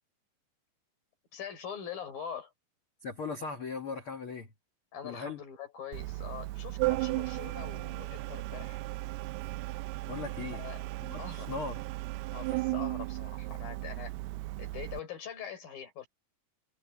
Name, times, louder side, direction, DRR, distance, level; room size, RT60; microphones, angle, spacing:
voice 1, 1.3-2.5 4.9-8.8 10.5-10.8 11.2-11.5 12.3-14.1 14.6-16.1, left 8 dB, 50° left, 6.7 m, -43 dB
voice 2, 3.0-4.5 5.0-5.4 10.1-10.6 11.0-11.8, left 4 dB, 70° left, 1.2 m, -38 dB
Organ, 5.9-15.0, right 20 dB, 90° right, 2.3 m, -35 dB
omnidirectional pair, 5.2 m